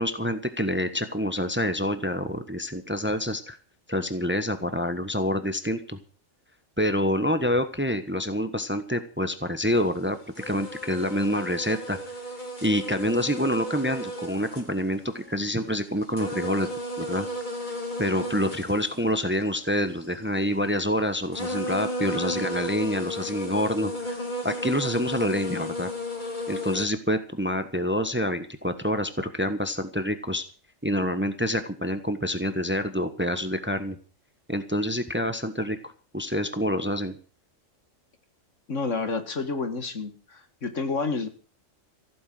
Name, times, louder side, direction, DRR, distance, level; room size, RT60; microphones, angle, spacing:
voice 1, 0.0-3.6 3.9-6.0 6.8-12.0 12.6-16.7 17.0-17.3 18.0-24.2 24.4-25.9 26.5-30.4 30.8-34.0 34.5-37.1, equal, 10° right, 10 dB, 1.3 m, -27 dB
sound 1, 9.8-10.0 10.4-15.4 15.8-20.2 21.0-21.1 21.3-26.9, equal, 35° left, 3.8 m, -34 dB
voice 2, 38.7-41.3, left 4 dB, 65° left, 8 dB, 2.2 m, -29 dB
15.5 x 9.2 x 7.7 m, 0.38 s
omnidirectional pair, 1.4 m